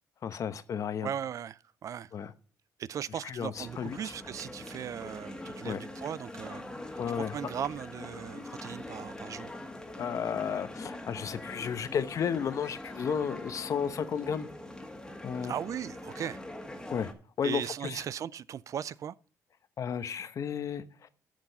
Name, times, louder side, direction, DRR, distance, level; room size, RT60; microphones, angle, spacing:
voice 1, 0.2-1.1 2.1-2.3 3.2-4.0 5.6-5.8 7.0-7.4 10.0-14.5 15.2-15.5 16.9-17.1 17.4-18.0 19.8-21.1, left 7 dB, 55° left, 0.9 m, -33 dB
voice 2, 1.0-2.1 2.8-9.5 15.4-16.4 17.4-19.2, right 9 dB, 55° right, 0.4 m, -38 dB
sound 1, 3.5-17.1, left 1 dB, 10° left, 1.8 m, -43 dB
10.0 x 6.1 x 5.3 m
cardioid pair, 90°, 7 cm